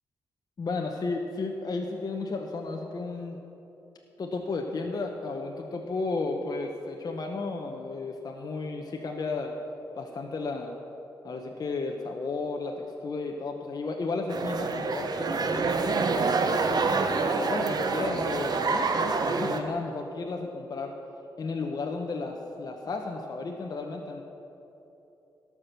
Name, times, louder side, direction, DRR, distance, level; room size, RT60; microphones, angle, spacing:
voice 1, 0.6-3.4 4.2-9.6 9.9-10.8 11.2-16.9 17.3-21.0 21.4-24.2, left 3 dB, 50° left, 2 dB, 1.0 m, -33 dB
sound 1, 14.3-19.6, right 4 dB, 55° right, 0.9 m, -27 dB
17.0 x 6.1 x 6.7 m, 3.0 s
cardioid pair, 75°, 8 cm